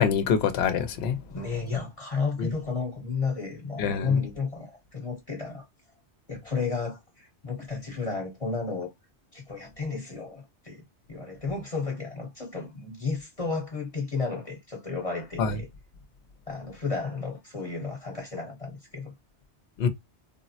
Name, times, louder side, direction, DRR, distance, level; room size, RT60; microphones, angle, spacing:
voice 1, 0.0-1.2 2.4-2.5 3.8-4.2 15.4-15.6 19.8-19.9, left 7 dB, 70° left, 0.8 m, -25 dB
voice 2, 1.3-5.6 6.3-8.9 9.3-10.8 11.1-15.7 16.5-19.1, left 4 dB, 35° left, 1.0 m, -32 dB
3.7 x 2.0 x 2.6 m
omnidirectional pair, 1.2 m